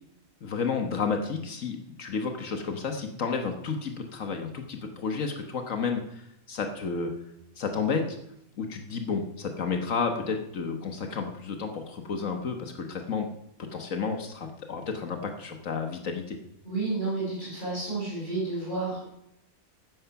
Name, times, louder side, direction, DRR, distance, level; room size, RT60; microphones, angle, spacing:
voice 1, 0.4-7.1 7.6-8.2 8.6-13.3 13.6-16.4, left 5 dB, 70° left, 5 dB, 1.6 m, -31 dB
voice 2, 16.6-19.1, right 3 dB, 35° left, -7 dB, 5.4 m, -31 dB
14.0 x 9.6 x 5.8 m, 0.80 s
omnidirectional pair, 1.4 m